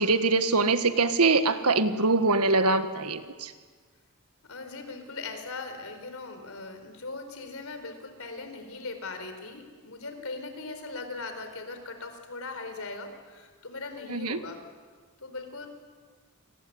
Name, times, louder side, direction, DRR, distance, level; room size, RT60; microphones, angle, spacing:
voice 1, 0.0-3.5 14.1-14.4, right 3 dB, 85° right, 9 dB, 1.7 m, -23 dB
voice 2, 4.5-14.6 15.2-15.7, left 3 dB, 65° left, 7 dB, 4.4 m, -39 dB
28.5 x 20.5 x 9.7 m, 1.5 s
head